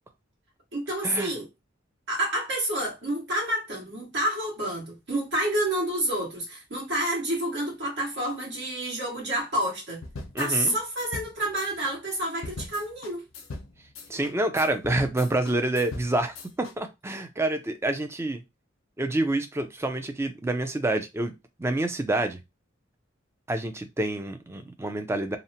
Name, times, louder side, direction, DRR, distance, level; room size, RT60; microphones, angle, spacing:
voice 1, 0.7-1.5 2.1-10.0 10.4-13.2, right 1 dB, 60° right, 1.3 m, -29 dB
sound 1, 10.0-16.7, left 2 dB, 85° left, 0.6 m, -40 dB
voice 2, 10.3-10.7 14.1-18.4 19.0-21.3 21.6-22.4 23.5-25.4, right 2 dB, 15° right, 0.4 m, -27 dB
2.8 x 2.1 x 2.6 m
head